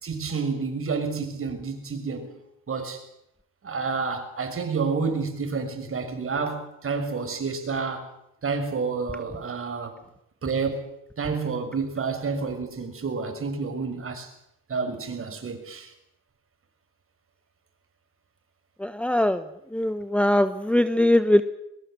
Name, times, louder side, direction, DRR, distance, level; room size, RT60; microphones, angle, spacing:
voice 1, 0.0-2.3 2.7-3.0 3.6-8.1 8.4-10.0 10.4-10.9 11.2-14.3 14.7-15.9, right 4 dB, 40° right, 6.3 m, -29 dB
voice 2, 18.8-19.4 19.7-21.4, left 1 dB, 5° left, 1.2 m, -21 dB
22.0 x 21.5 x 7.9 m
supercardioid pair, 85°, 34 cm